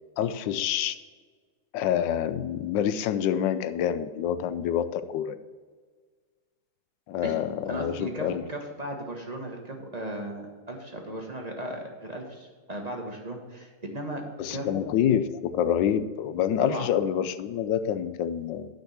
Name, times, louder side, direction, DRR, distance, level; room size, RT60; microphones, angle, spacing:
voice 1, 0.2-1.0 1.7-5.4 7.1-8.4 14.4-18.7, left 9 dB, 75° left, 12 dB, 1.1 m, -27 dB
voice 2, 7.7-14.2 14.5-14.8 16.6-16.9, right 1 dB, 25° right, 1 dB, 1.0 m, -36 dB
9.1 x 5.3 x 7.2 m, 1.5 s
omnidirectional pair, 2.3 m